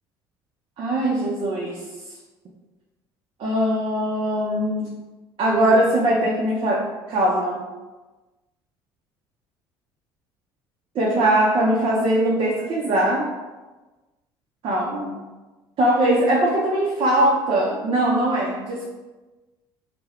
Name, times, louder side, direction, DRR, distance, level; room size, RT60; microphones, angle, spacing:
voice 1, 0.8-1.8 3.4-4.9 5.4-7.7 10.9-13.3 14.6-15.2 15.8-18.8, right 1 dB, 45° right, -4 dB, 0.5 m, -21 dB
2.2 x 2.1 x 3.4 m, 1.2 s
hypercardioid pair, 60°, 13 cm